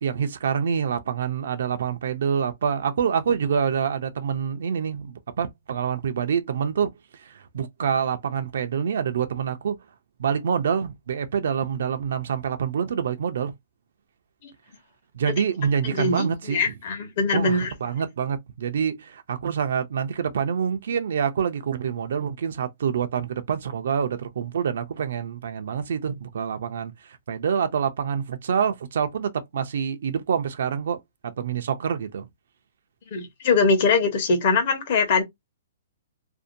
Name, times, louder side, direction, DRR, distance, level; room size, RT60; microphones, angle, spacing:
voice 1, 0.0-6.9 7.2-9.8 10.2-13.5 15.1-16.7 17.3-32.3, right 7 dB, 65° right, 0.5 m, -26 dB
voice 2, 15.8-17.7 33.1-35.2, left 4 dB, 45° left, 0.9 m, -22 dB
2.6 x 2.1 x 2.5 m
hypercardioid pair, 165°, 0 cm